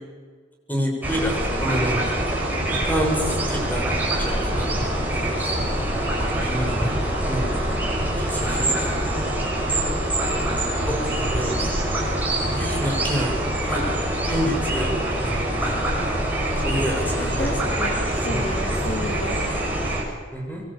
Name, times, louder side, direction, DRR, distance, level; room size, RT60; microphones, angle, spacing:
voice 1, 0.7-2.0 2.7-5.0 5.2-5.4 6.2-7.5 8.2-8.9 10.8-11.5 12.5-13.3 13.6-13.9 14.2-15.8 16.6-18.7 20.3-20.6, equal, 10° left, 0 dB, 7.1 m, -29 dB
sound 1, 1.0-20.0, right 1 dB, 10° right, 7.0 m, -24 dB
voice 2, 17.2-19.7, left 1 dB, 35° left, 0 dB, 3.3 m, -32 dB
24.5 x 23.0 x 8.8 m, 1.5 s
head